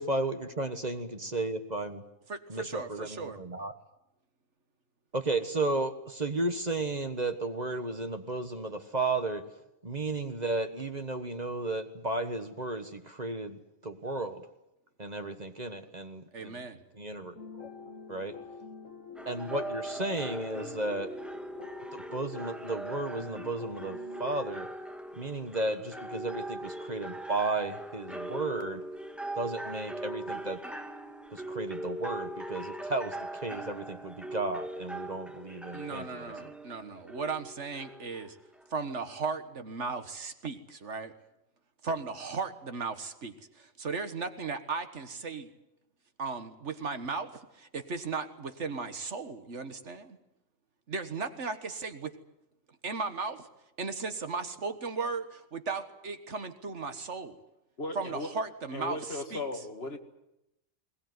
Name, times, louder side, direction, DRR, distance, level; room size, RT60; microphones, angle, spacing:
voice 1, 0.0-2.0 2.5-3.7 5.1-9.4 9.8-14.5 15.0-16.6 17.0-17.3 18.1-18.4 19.2-21.1 21.9-24.7 25.1-28.8 29.4-30.6 31.3-36.5, right 2 dB, 35° right, 8 dB, 1.4 m, -34 dB
voice 2, 2.3-3.4 16.3-16.8 35.7-38.4 38.7-41.1 41.8-45.5 46.2-50.2 50.9-52.1 52.8-53.5 53.8-57.3 57.9-59.0 59.3-59.4, right 4 dB, 65° right, 9 dB, 1.8 m, -36 dB
sound 1, 17.4-24.3, left 6 dB, 75° left, 1.8 m, -46 dB
sound 2, 19.2-38.7, right 1 dB, ahead, 1.5 m, -41 dB
voice 3, 57.8-58.3 58.7-60.0, left 2 dB, 50° left, 5 dB, 2.2 m, -36 dB
21.5 x 20.0 x 9.5 m, 0.88 s
omnidirectional pair, 1.3 m